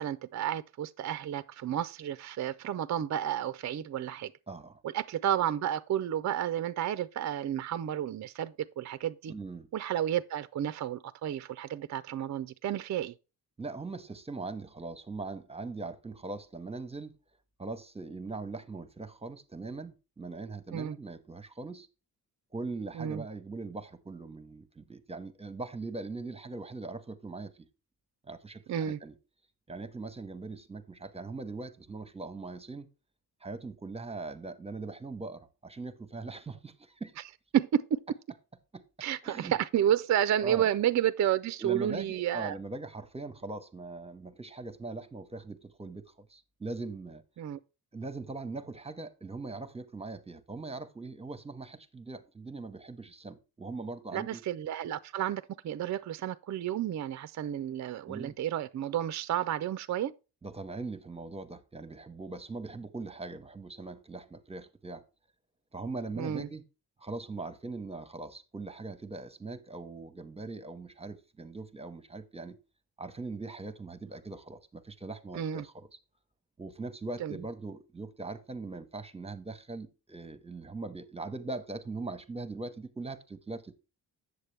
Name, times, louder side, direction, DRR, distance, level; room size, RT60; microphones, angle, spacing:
voice 1, 0.0-4.3 4.9-9.3 9.7-13.1 20.7-21.0 22.9-23.2 28.7-29.0 37.5-38.0 39.0-42.6 47.4-47.6 54.1-60.1 66.2-66.5 75.3-75.6 77.2-77.4, right 10 dB, 45° right, 0.4 m, -31 dB
voice 2, 4.5-4.8 9.3-9.7 13.6-17.1 17.6-21.9 22.5-27.7 28.2-29.2 29.7-32.9 33.4-37.1 38.7-38.8 39.2-39.6 40.4-40.7 41.6-47.2 47.9-54.4 58.1-58.3 60.4-65.0 65.7-66.6 67.0-72.6 73.0-76.0 76.6-83.8, right 3 dB, 15° right, 0.9 m, -41 dB
8.1 x 6.7 x 3.2 m
cardioid pair, 75°, 41 cm